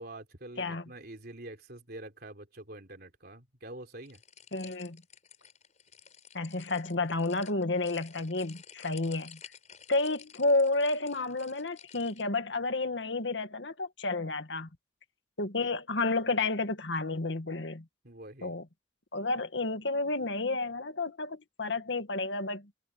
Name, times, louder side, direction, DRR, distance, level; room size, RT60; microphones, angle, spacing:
voice 1, 0.0-4.2 18.0-18.5, right 1 dB, 55° right, 3.6 m, -46 dB
sound 1, 4.1-12.3, left 8 dB, 40° left, 6.3 m, -53 dB
voice 2, 4.5-5.0 6.3-9.4 9.9-14.7 15.4-17.9 18.4-18.6 19.1-22.7, left 3 dB, 75° left, 1.9 m, -31 dB
head